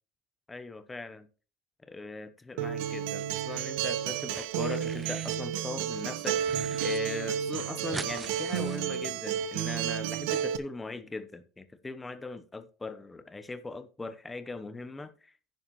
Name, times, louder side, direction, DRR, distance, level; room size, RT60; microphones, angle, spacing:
voice 1, 0.5-1.3 1.8-15.3, left 3 dB, 10° left, 0.9 m, -39 dB
Acoustic guitar, 2.6-10.6, right 9 dB, 75° right, 1.1 m, -32 dB
sound 1, 3.2-3.9 4.2-5.4 5.8-7.0 7.3-7.4 7.5-9.5, right 4 dB, 15° right, 0.5 m, -44 dB
10.5 x 9.8 x 3.0 m
cardioid pair, 155°, 0 cm